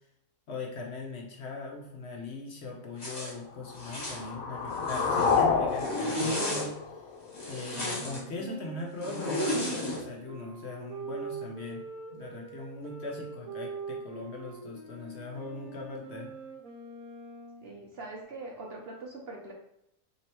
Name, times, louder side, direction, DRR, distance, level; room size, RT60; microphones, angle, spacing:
voice 1, 0.5-7.1 7.5-11.8 12.1-16.3, left 3 dB, 60° left, 0 dB, 0.9 m, -40 dB
Zipper (clothing), 3.0-3.3 3.8-4.2 4.7-5.4 5.7-6.7 7.3-8.2 9.0-10.0, equal, 30° left, 1.4 m, -33 dB
sound 1, 3.6-7.6, left 5 dB, 80° left, 1.0 m, -29 dB
Wind instrument woodwind instrument, 7.7-17.7, right 5 dB, 80° right, 1.2 m, -43 dB
voice 2, 17.6-19.5, right 2 dB, 55° right, 0 dB, 0.8 m, -42 dB
3.1 x 2.9 x 4.3 m, 0.79 s
omnidirectional pair, 1.5 m